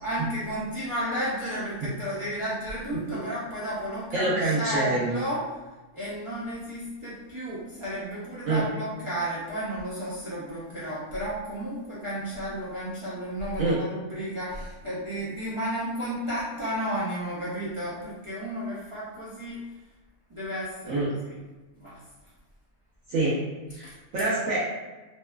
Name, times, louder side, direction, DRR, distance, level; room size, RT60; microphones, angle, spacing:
voice 1, 0.0-5.4 5.9-19.6 20.3-21.3 21.8-22.0 23.8-23.9, equal, 55° right, -11 dB, 0.3 m, -32 dB
voice 2, 4.1-5.2 8.5-8.6 13.6-13.8 20.9-21.1 23.1-23.4 23.7-24.6, right 2 dB, 75° right, -8 dB, 1.0 m, -26 dB
3.0 x 2.2 x 2.2 m, 1.2 s
omnidirectional pair, 1.5 m